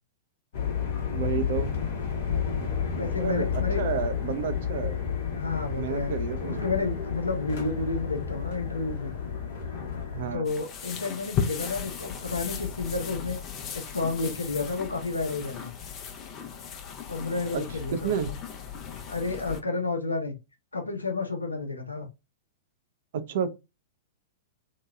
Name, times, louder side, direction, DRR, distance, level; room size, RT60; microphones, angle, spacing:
sound 1, 0.5-10.4, left 7 dB, 55° left, 0.9 m, -31 dB
voice 1, 1.1-1.7 3.1-5.0 5.8-6.7 10.1-10.5 17.5-17.6 17.9-18.3 23.1-23.5, right 7 dB, 55° right, 0.4 m, -30 dB
voice 2, 2.9-3.8 5.4-6.1 6.4-9.1 10.3-13.4 13.7-15.7 17.1-18.3 19.1-20.4 20.7-22.1, left 3 dB, 85° left, 0.7 m, -31 dB
sound 2, 10.4-19.6, left 7 dB, 35° left, 0.6 m, -36 dB
2.8 x 2.2 x 2.2 m
figure-of-eight pair, 100°, 0 cm